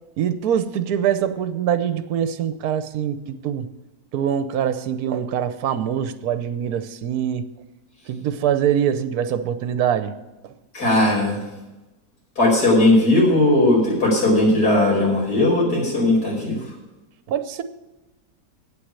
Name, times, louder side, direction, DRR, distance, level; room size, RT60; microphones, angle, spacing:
voice 1, 0.2-3.7 4.1-7.4 8.1-10.2 17.3-17.6, right 9 dB, 70° right, 12 dB, 1.2 m, -23 dB
voice 2, 10.7-11.4 12.4-16.6, left 1 dB, 80° left, -3 dB, 5.4 m, -18 dB
8.9 x 8.2 x 8.8 m, 1.0 s
omnidirectional pair, 1.7 m